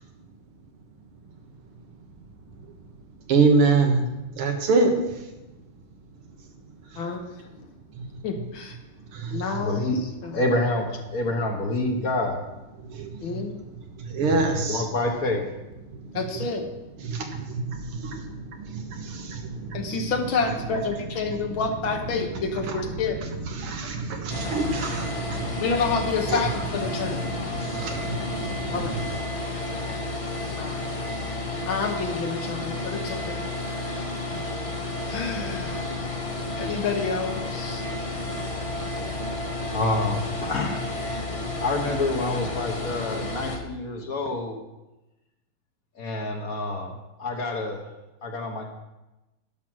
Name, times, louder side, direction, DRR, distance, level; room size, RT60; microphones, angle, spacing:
voice 1, 3.3-4.0 4.4-4.9 9.1-9.3 12.9-13.1 14.1-14.8 17.1-18.2 18.7-19.9 23.6-25.6 26.3-26.4 27.3-28.8, right 4 dB, 85° right, 3 dB, 2.2 m, -25 dB
voice 2, 7.0-7.5 8.2-8.8 9.3-9.8 10.2-10.4 13.2-13.5 16.1-16.6 19.7-23.2 25.6-27.2 28.7-28.9 30.6-30.9 31.7-33.5 34.0-34.1 35.1-35.8 36.6-37.8, left 5 dB, 70° left, 4 dB, 1.9 m, -28 dB
voice 3, 9.6-10.0 10.3-12.4 14.2-15.4 39.7-40.9 41.6-44.6 45.9-46.9 47.2-47.8 48.2-48.7, left 2 dB, 50° left, 2 dB, 1.3 m, -27 dB
sound 1, 24.3-43.6, left 2 dB, 30° left, 0.6 m, -31 dB
10.5 x 6.1 x 6.2 m, 1.0 s
omnidirectional pair, 2.4 m